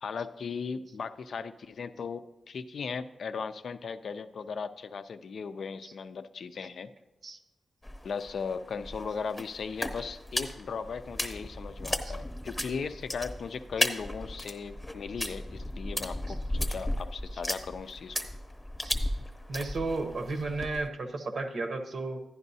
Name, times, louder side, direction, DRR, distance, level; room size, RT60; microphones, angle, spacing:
voice 1, 0.0-6.9 8.0-18.2, left 5 dB, 65° left, 10 dB, 0.4 m, -37 dB
sound 1, 7.8-20.9, left 1 dB, 15° left, 0.9 m, -35 dB
voice 2, 19.5-22.2, right 3 dB, 55° right, 5 dB, 0.8 m, -34 dB
11.0 x 11.0 x 2.7 m, 1.0 s
wide cardioid pair, 125°, 0 cm